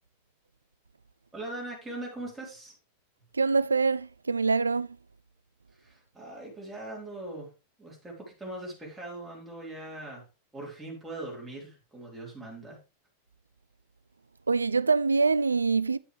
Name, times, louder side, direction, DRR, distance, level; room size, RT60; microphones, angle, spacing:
voice 1, 1.3-2.7 5.8-7.5 7.8-10.3 10.5-12.8, right 2 dB, 5° right, 3.6 m, -41 dB
voice 2, 3.3-5.0 14.5-16.0, right 4 dB, 80° right, 0.3 m, -25 dB
9.0 x 7.5 x 3.2 m
figure-of-eight pair, 90°, 0 cm